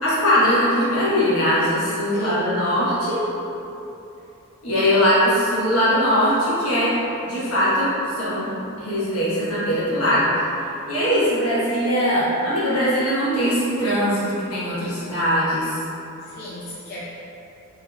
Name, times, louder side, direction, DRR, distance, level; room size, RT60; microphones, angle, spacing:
voice 1, 0.0-3.2 4.6-6.9 7.2-7.9 8.1-8.5 8.8-10.3 10.9-14.2 14.5-15.7, equal, 80° left, -10 dB, 1.1 m, -20 dB
voice 2, 2.1-2.7 16.2-17.0, equal, 45° left, -10 dB, 0.5 m, -37 dB
3.6 x 3.0 x 2.2 m, 2.9 s
head